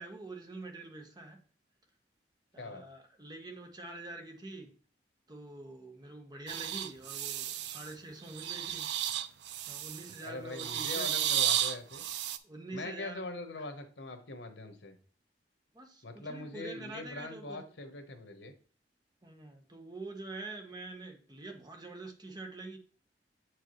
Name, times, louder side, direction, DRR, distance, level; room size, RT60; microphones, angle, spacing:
voice 1, 0.0-1.4 2.5-4.7 5.3-8.9 9.7-11.1 12.4-13.2 15.7-17.6 19.2-22.8, right 2 dB, 25° right, 1.2 m, -45 dB
sound 1, 6.5-7.9 8.3-10.2 10.5-12.4, right 11 dB, 70° right, 0.5 m, -33 dB
voice 2, 10.2-12.0 12.7-15.0 16.0-18.5, left 2 dB, 90° left, 1.1 m, -42 dB
7.7 x 4.7 x 3.1 m
head